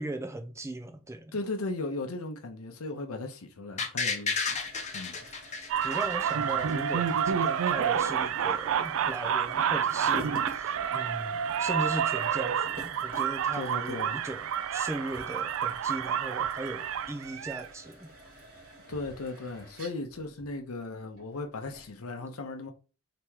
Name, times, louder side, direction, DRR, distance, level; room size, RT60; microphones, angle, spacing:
voice 1, 0.0-1.4 5.8-18.1, right 2 dB, 15° right, 0.5 m, -38 dB
voice 2, 1.3-4.6 4.9-5.2 13.6-14.2 18.9-22.7, left 2 dB, 85° left, 0.7 m, -37 dB
sound 1, 3.8-6.7 7.1-7.2, left 4 dB, 30° left, 0.7 m, -32 dB
sound 2, 4.2-22.0, right 1 dB, 45° right, 1.7 m, -48 dB
sound 3, 5.7-17.7, right 8 dB, 70° right, 0.3 m, -29 dB
3.5 x 2.9 x 4.5 m
head